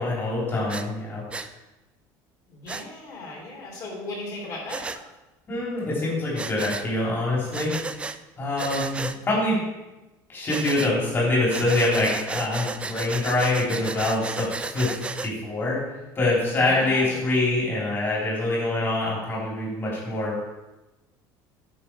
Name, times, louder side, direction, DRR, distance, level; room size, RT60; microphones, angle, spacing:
voice 1, 0.0-1.5 5.5-7.8 8.4-9.6 10.3-15.9 16.1-20.4, left 2 dB, 25° left, -5 dB, 3.4 m, -25 dB
Breathing, 0.7-0.9 1.3-1.5 2.7-2.8 4.7-5.0 6.3-6.9 7.5-8.2 8.6-9.2 10.5-10.9 11.5-15.3, right 4 dB, 10° right, 0.3 m, -33 dB
voice 2, 2.5-4.9 16.5-17.3, left 2 dB, 40° left, -1 dB, 3.3 m, -36 dB
9.5 x 6.2 x 4.5 m, 1.0 s
cardioid pair, 145°, 9 cm